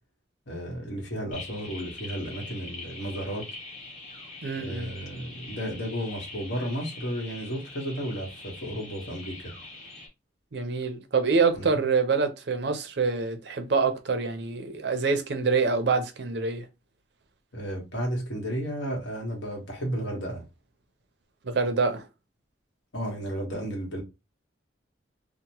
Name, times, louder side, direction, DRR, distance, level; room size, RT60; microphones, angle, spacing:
voice 1, 0.5-3.5 4.5-9.5 11.6-11.8 17.5-20.4 22.9-24.0, equal, 80° left, 1.3 m, -33 dB
sound 1, 1.3-10.1, left 2 dB, 35° left, 1.2 m, -43 dB
voice 2, 4.4-4.9 10.5-16.7 21.4-22.1, right 4 dB, 65° right, 0.5 m, -26 dB
2.9 x 2.1 x 2.9 m
head